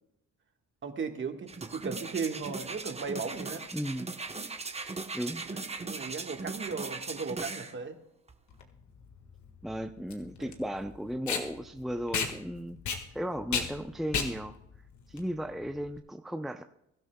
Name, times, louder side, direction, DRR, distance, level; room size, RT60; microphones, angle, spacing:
voice 1, 0.8-3.7 5.4-8.0 10.4-10.6, right 5 dB, 40° right, 5 dB, 1.6 m, -36 dB
sound 1, 1.5-7.7 8.3-8.4, right 3 dB, 20° right, 1.0 m, -39 dB
voice 2, 3.7-4.1 5.1-5.4 9.6-12.8 13.1-14.6 15.1-16.6, equal, ahead, 6 dB, 0.6 m, -35 dB
Packing tape duct tape, 8.5-16.0, left 6 dB, 70° left, 1.8 m, -35 dB
22.0 x 12.5 x 2.3 m, 0.80 s
cardioid pair, 90°, 30 cm